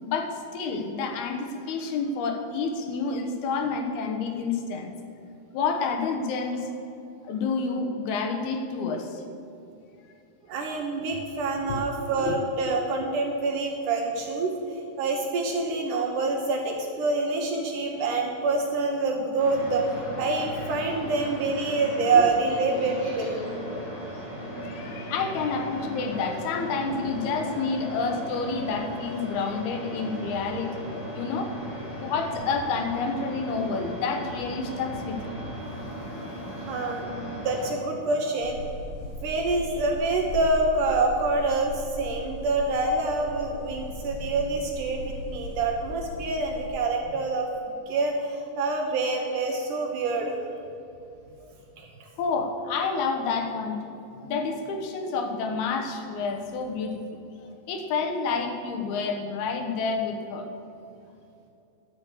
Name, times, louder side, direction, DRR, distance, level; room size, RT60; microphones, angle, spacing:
voice 1, 0.0-4.9 5.5-6.7 7.2-9.2 11.7-12.4 12.7-12.8 22.1-22.2 24.6-30.9 31.1-31.5 32.0-35.3 51.4-51.5 52.2-57.0 57.7-60.5, left 4 dB, 80° left, 4 dB, 3.0 m, -29 dB
voice 2, 10.5-14.5 15.0-23.4 36.7-37.1 37.4-38.6 39.2-47.5 47.9-50.4 51.8-52.1, right 3 dB, 70° right, 1 dB, 2.2 m, -26 dB
sound 1, 19.4-37.7, equal, 35° left, 2.6 m, -37 dB
sound 2, 38.4-46.7, equal, 60° left, 2.1 m, -38 dB
12.0 x 6.7 x 8.2 m, 2.8 s
omnidirectional pair, 4.5 m